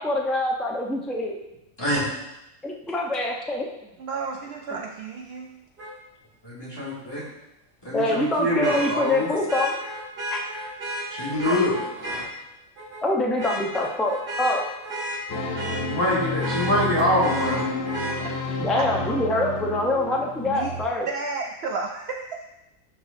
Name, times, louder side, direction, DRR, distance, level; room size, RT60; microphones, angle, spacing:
voice 1, 0.0-1.4 2.6-3.7 7.9-9.7 10.3-10.4 13.0-14.6 18.6-21.1, left 1 dB, ahead, -1 dB, 0.4 m, -25 dB
voice 2, 1.8-2.1 6.4-7.2 7.8-9.4 11.1-11.8 15.9-17.6, left 1 dB, 15° left, -8 dB, 2.1 m, -24 dB
voice 3, 4.0-5.6 11.5-11.6 18.2-18.3 18.7-18.9 20.4-20.7 21.1-22.5, right 4 dB, 65° right, 2 dB, 0.6 m, -32 dB
Vehicle horn car horn honking, 5.8-5.9 8.6-12.2 12.8-13.0 13.4-16.0 16.4-18.2 20.0-20.1, right 1 dB, 45° right, 2.1 m, -33 dB
sound 1, 15.3-20.9, left 2 dB, 55° left, 0.8 m, -30 dB
11.0 x 4.4 x 2.6 m, 0.90 s
omnidirectional pair, 1.5 m